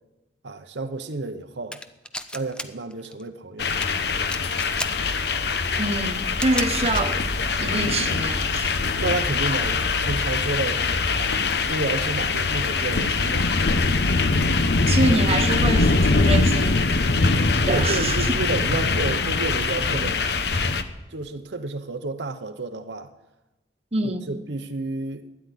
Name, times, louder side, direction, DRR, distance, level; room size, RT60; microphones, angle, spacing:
voice 1, 0.4-1.8 2.3-3.7 9.0-11.4 11.7-13.5 17.7-20.2 21.1-23.1 24.0-25.3, right 3 dB, 85° right, 0.9 m, -30 dB
sound 1, 1.7-2.7 2.9-3.2 3.6-3.9 4.2-4.9 5.3-5.4 6.3-7.1, left 1 dB, 5° left, 0.6 m, -32 dB
sound 2, 3.6-20.8, left 3 dB, 70° left, 0.9 m, -23 dB
voice 2, 5.8-7.2 7.6-8.7 14.9-16.9 17.7-18.3 23.9-24.3, right 2 dB, 35° right, 1.1 m, -26 dB
13.0 x 9.8 x 9.9 m
head